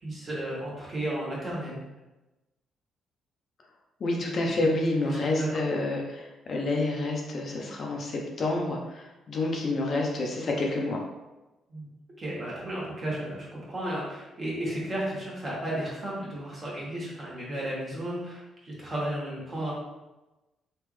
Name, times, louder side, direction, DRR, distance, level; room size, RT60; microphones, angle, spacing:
voice 1, 0.0-1.8 4.3-4.7 5.1-5.5 11.7-11.9 12.2-19.7, right 1 dB, 30° right, -5 dB, 1.4 m, -34 dB
voice 2, 4.0-11.0, left 2 dB, 50° left, 0 dB, 0.6 m, -28 dB
3.2 x 2.5 x 3.2 m, 1.1 s
cardioid pair, 90°, 0 cm